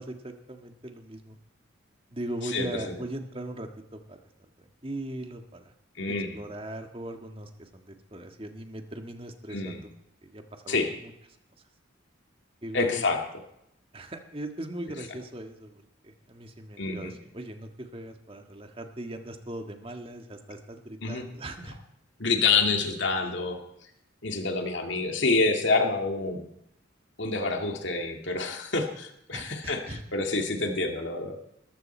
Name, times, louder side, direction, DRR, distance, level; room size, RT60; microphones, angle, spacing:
voice 1, 0.0-1.4 2.1-4.2 4.8-5.7 6.1-9.9 10.2-11.1 12.6-13.0 13.9-21.8 23.2-23.3 29.3-30.0, right 1 dB, 30° right, 5 dB, 1.7 m, -39 dB
voice 2, 2.5-2.9 6.0-6.4 9.5-9.8 10.7-10.9 12.7-13.2 16.8-17.1 21.0-21.2 22.2-23.6 24.2-26.5 27.2-31.4, left 3 dB, 65° left, 3 dB, 2.2 m, -27 dB
20.5 x 14.5 x 4.5 m, 0.79 s
head